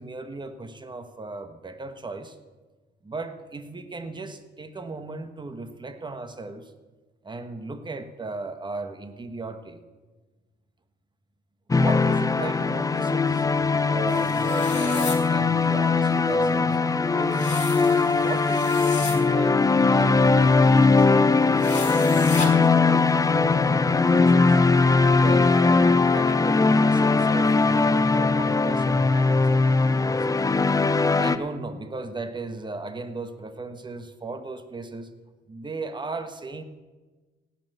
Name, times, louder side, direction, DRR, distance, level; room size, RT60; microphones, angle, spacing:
voice 1, 0.0-2.4 3.0-6.7 7.2-9.8 11.7-13.5 13.9-16.8 17.1-17.6 18.2-19.6 19.9-21.7 22.1-24.6 25.0-30.4 31.2-35.1 35.5-36.6, right 3 dB, 25° right, 9 dB, 1.2 m, -36 dB
sound 1, 11.7-31.4, left 4 dB, 15° left, 0.6 m, -20 dB
sound 2, 14.1-15.2 17.3-19.2 21.6-22.5, left 4 dB, 35° left, 3.5 m, -34 dB
17.0 x 6.9 x 7.9 m, 1.3 s
cardioid pair, 90°, 20 cm